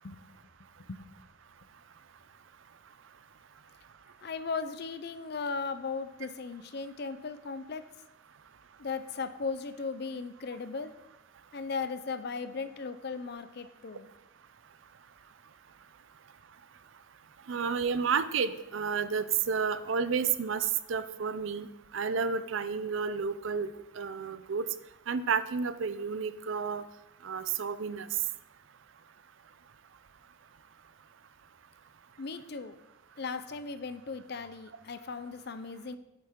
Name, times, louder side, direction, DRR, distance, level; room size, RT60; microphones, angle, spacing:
voice 1, 4.2-7.8 8.8-10.9 11.5-14.1 32.2-32.8 33.2-36.0, left 4 dB, 50° left, 11 dB, 0.5 m, -37 dB
voice 2, 17.5-21.7 21.9-23.7 24.0-24.7 25.1-26.8 27.2-28.1, right 6 dB, 70° right, 13 dB, 0.5 m, -31 dB
8.8 x 7.7 x 3.7 m, 0.92 s
head